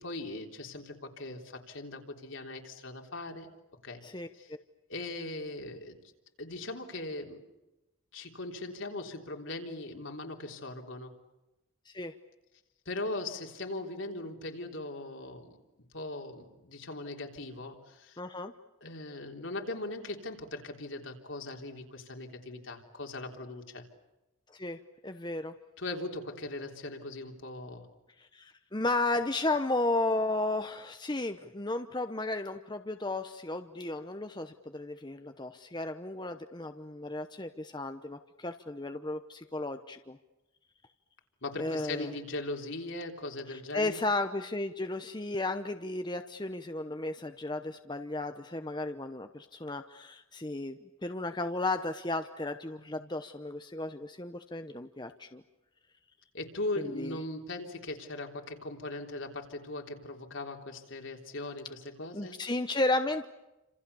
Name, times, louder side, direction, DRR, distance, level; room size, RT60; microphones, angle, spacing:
voice 1, 0.0-3.5 3.8-4.0 4.3-4.6 4.9-6.0 6.4-7.4 8.1-11.1 12.9-15.6 15.9-18.2 18.8-23.8 25.8-27.9 41.4-44.0 56.3-62.4, left 2 dB, 70° left, 2 dB, 3.7 m, -39 dB
voice 2, 4.0-4.6 11.9-12.1 18.2-18.5 24.5-25.5 28.2-40.2 41.6-42.1 43.5-55.4 56.8-57.2 62.1-63.3, left 2 dB, 20° left, 8 dB, 0.9 m, -34 dB
29.5 x 27.0 x 7.0 m, 0.99 s
head